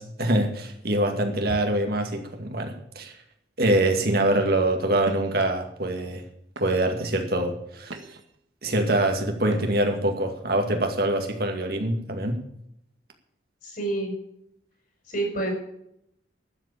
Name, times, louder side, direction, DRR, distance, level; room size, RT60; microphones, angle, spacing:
voice 1, 0.0-3.1 3.6-6.2 6.6-8.0 8.6-12.4, right 1 dB, 55° right, 4 dB, 2.2 m, -24 dB
sound 1, 5.0-5.4 6.1-6.2 6.6-7.0 7.6-8.4 9.4-10.0, right 2 dB, 85° right, 1.7 m, -41 dB
voice 2, 13.6-14.1 15.1-15.5, right 2 dB, 50° left, 2 dB, 5.4 m, -28 dB
12.5 x 8.4 x 8.5 m, 0.75 s
head